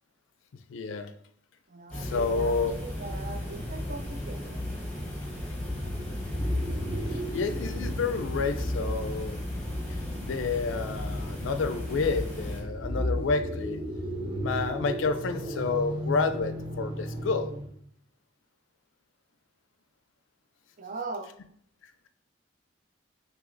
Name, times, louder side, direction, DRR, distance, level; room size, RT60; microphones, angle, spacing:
voice 1, 0.7-1.1 1.9-2.7 7.1-9.4 9.9-10.0 10.2-13.8 14.4-17.5, left 4 dB, 80° left, 9 dB, 0.4 m, -29 dB
voice 2, 1.7-4.6 20.8-21.3, right 3 dB, 40° right, 6 dB, 0.4 m, -40 dB
sound 1, 1.9-12.6, left 1 dB, 5° left, 1.0 m, -35 dB
sound 2, 5.6-17.8, equal, 25° right, 0.8 m, -35 dB
6.1 x 2.8 x 2.5 m, 0.65 s
head